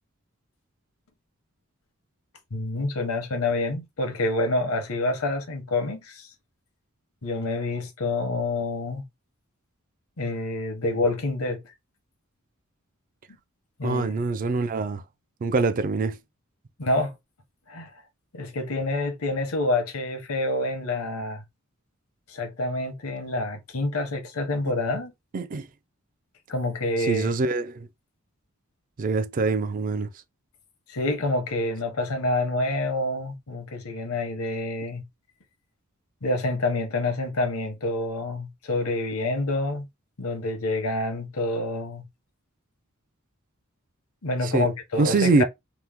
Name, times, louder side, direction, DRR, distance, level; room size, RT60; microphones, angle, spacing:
voice 1, 2.5-6.3 7.2-9.0 10.2-11.6 13.8-14.2 16.8-17.2 17.7-17.9 18.3-21.4 22.3-25.1 26.5-27.3 30.9-35.0 36.2-39.9 40.2-42.0 44.2-45.4, left 2 dB, 85° left, 0.8 m, -27 dB
voice 2, 13.8-15.0 15.4-16.2 25.3-25.7 27.0-27.9 29.0-30.1 44.4-44.7 45.0-45.4, right 3 dB, 40° right, 0.3 m, -24 dB
2.9 x 2.0 x 3.4 m
head